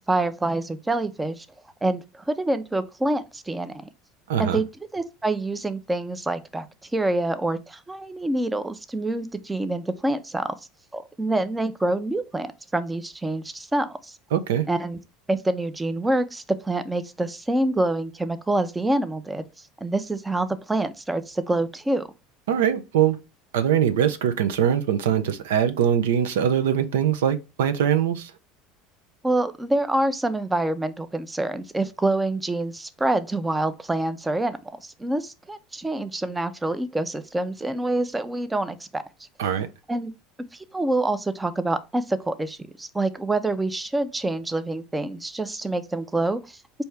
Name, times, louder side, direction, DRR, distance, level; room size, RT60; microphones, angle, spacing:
voice 1, 0.1-1.5 1.8-3.9 4.4-4.6 4.9-6.7 6.9-10.5 10.9-14.2 14.7-15.0 15.3-19.4 19.8-22.1 29.2-39.0 39.9-40.1 40.5-46.8, right 2 dB, 10° right, 0.5 m, -26 dB
voice 2, 4.3-4.6 14.3-14.6 22.5-23.2 23.5-28.3 39.4-39.7, right 9 dB, 90° right, 0.5 m, -22 dB
4.4 x 2.7 x 3.2 m
supercardioid pair, 95°, 0 cm